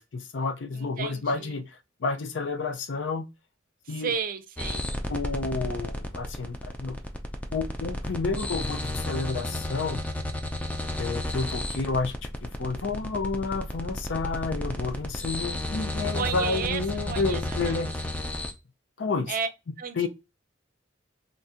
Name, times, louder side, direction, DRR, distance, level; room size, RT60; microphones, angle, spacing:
voice 1, 0.0-3.3 3.9-4.1 5.1-7.0 7.5-10.0 11.0-12.3 12.6-17.9 19.0-19.3 20.0-20.1, left 4 dB, 65° left, 0.5 m, -30 dB
voice 2, 0.7-1.6 3.9-4.9 16.1-16.8 17.1-17.4 17.6-17.9 19.3-19.5 19.8-20.1, right 6 dB, 45° right, 0.5 m, -32 dB
sound 1, 4.6-18.5, left 1 dB, 10° left, 0.4 m, -32 dB
3.5 x 2.5 x 2.7 m
head